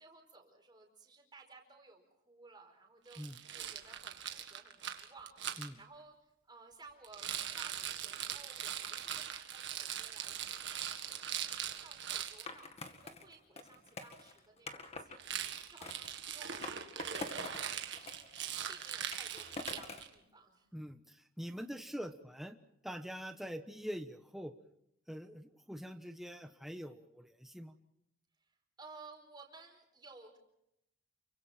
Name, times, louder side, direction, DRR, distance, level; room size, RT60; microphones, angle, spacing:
voice 1, 0.0-3.2 3.5-20.7 28.4-28.5 28.8-30.4, right 3 dB, 20° right, 2 dB, 4.8 m, -57 dB
Rattle, 3.1-5.7 7.0-12.5 15.2-20.1, right 9 dB, 60° right, 1.8 m, -41 dB
Skateboard, 12.5-15.2 15.8-17.7 17.9-20.1, left 3 dB, 30° left, 1.9 m, -46 dB
voice 2, 20.7-22.6 22.8-24.5 25.1-27.8, equal, ahead, 6 dB, 1.0 m, -44 dB
29.0 x 24.0 x 4.4 m, 0.80 s
head